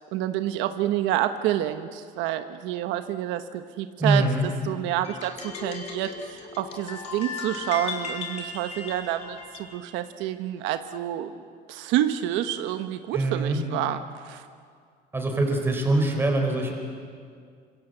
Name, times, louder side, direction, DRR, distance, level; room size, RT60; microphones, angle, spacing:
voice 1, 0.0-11.3 11.7-14.5, right 12 dB, 75° right, 8 dB, 1.2 m, -28 dB
voice 2, 4.0-4.5 13.1-13.6 15.1-16.7, right 2 dB, 10° right, 2 dB, 4.4 m, -23 dB
sound 1, 5.0-9.8, left 5 dB, 35° left, 3.6 m, -37 dB
28.0 x 26.0 x 8.0 m, 2.1 s
cardioid pair, 170°, 20 cm